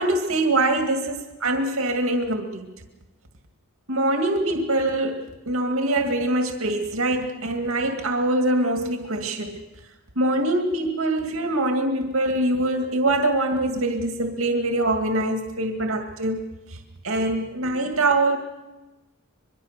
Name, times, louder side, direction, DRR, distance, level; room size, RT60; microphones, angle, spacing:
voice 1, 0.0-2.7 3.9-5.2 5.5-9.6 10.2-16.4 17.0-18.4, right 2 dB, 85° right, 4 dB, 2.2 m, -23 dB
23.0 x 22.5 x 6.7 m, 1.1 s
head